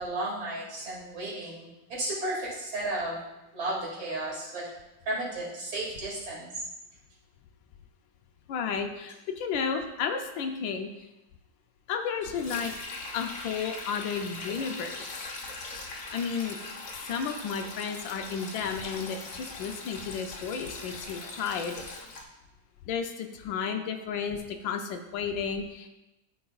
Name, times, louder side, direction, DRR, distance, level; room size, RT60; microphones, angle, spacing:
voice 1, 0.0-3.2 3.5-4.7 5.0-6.6, right 2 dB, 80° right, -6 dB, 3.1 m, -33 dB
voice 2, 8.5-10.9 11.9-12.7 13.1-15.1 16.1-16.6 17.1-21.8 22.9-25.9, left 6 dB, 75° left, 6 dB, 1.3 m, -32 dB
Sink (filling or washing), 12.2-22.2, left 3 dB, 50° left, 1.2 m, -41 dB
12.5 x 5.0 x 2.3 m, 0.96 s
omnidirectional pair, 2.1 m